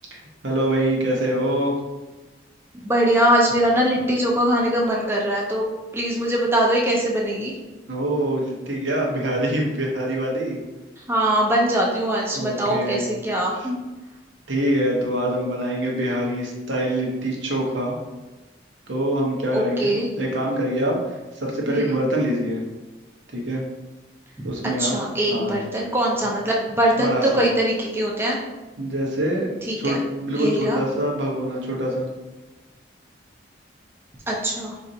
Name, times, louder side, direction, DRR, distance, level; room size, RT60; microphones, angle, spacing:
voice 1, 0.1-1.8 7.9-10.6 12.3-13.0 14.5-18.0 18.9-19.9 20.2-22.6 23.3-23.6 24.4-25.0 25.3-25.5 27.0-27.4 28.8-29.5 29.8-32.1, right 1 dB, 85° right, -2 dB, 0.8 m, -24 dB
voice 2, 2.8-5.6 5.9-7.6 11.0-13.8 19.5-20.1 21.7-22.0 24.4-24.5 24.8-28.4 29.6-30.0 30.4-30.8 34.3-34.8, right 1 dB, 15° right, -3 dB, 0.5 m, -22 dB
4.0 x 2.5 x 2.7 m, 1.1 s
head